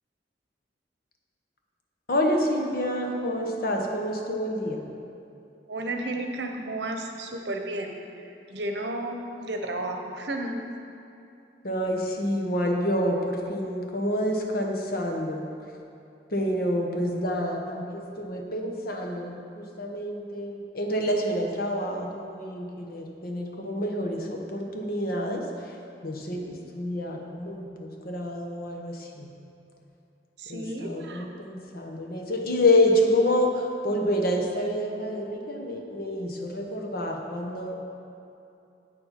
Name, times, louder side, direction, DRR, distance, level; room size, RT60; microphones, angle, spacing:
voice 1, 2.1-4.8 11.6-15.5 16.3-25.8 26.0-29.3 30.5-37.8, left 1 dB, 55° left, 1 dB, 1.2 m, -28 dB
voice 2, 5.7-10.6 30.4-31.3, right 1 dB, 70° right, 3 dB, 1.0 m, -33 dB
8.5 x 7.2 x 5.9 m, 2.7 s
head